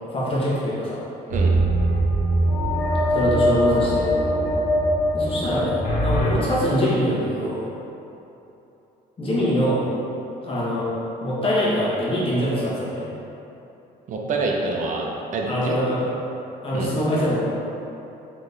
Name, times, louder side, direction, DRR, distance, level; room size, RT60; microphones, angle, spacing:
voice 1, 0.1-1.0 3.1-4.1 5.1-7.7 9.2-9.8 10.4-10.9 11.2-13.1 15.5-16.1 16.6-17.4, equal, 30° left, -8 dB, 1.2 m, -23 dB
sound 1, 1.3-6.3, equal, 80° left, 1.1 m, -21 dB
voice 2, 14.1-15.8 16.7-16.9, right 3 dB, 50° right, -1 dB, 0.6 m, -26 dB
4.1 x 3.1 x 3.4 m, 3.0 s
cardioid pair, 110°, 17 cm